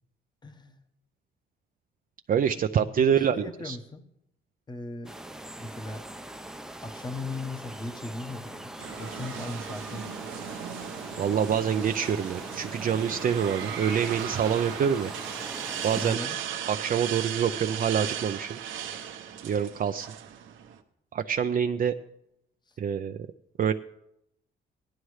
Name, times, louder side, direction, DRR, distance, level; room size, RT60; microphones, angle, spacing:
voice 1, 0.4-0.8 2.9-4.0 4.7-5.1 5.6-6.0 6.8-8.7 9.0-10.4 16.0-16.4 22.7-22.8, left 2 dB, 20° left, 6 dB, 1.1 m, -38 dB
voice 2, 2.3-3.8 11.2-15.1 15.8-16.2 16.7-18.6 18.9-19.0 19.4-20.1 21.1-22.0 22.8-23.2 23.6-23.7, right 8 dB, 45° right, 7 dB, 0.5 m, -26 dB
sound 1, 5.0-16.2, right 1 dB, 5° right, 0.6 m, -41 dB
sound 2, 8.8-20.8, right 9 dB, 80° right, 1.0 m, -37 dB
17.5 x 11.5 x 3.2 m, 0.80 s
cardioid pair, 90°, 20 cm